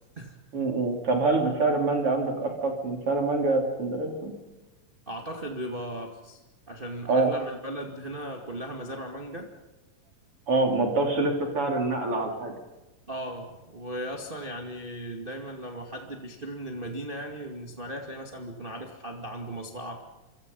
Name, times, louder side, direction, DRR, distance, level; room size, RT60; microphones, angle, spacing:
voice 1, 0.5-4.3 7.1-7.3 10.5-12.5, right 3 dB, 40° right, 1 dB, 4.4 m, -25 dB
voice 2, 5.1-6.4 6.7-9.5 13.1-20.0, right 1 dB, 20° right, 1 dB, 1.9 m, -37 dB
29.0 x 25.0 x 5.5 m, 1.1 s
omnidirectional pair, 3.9 m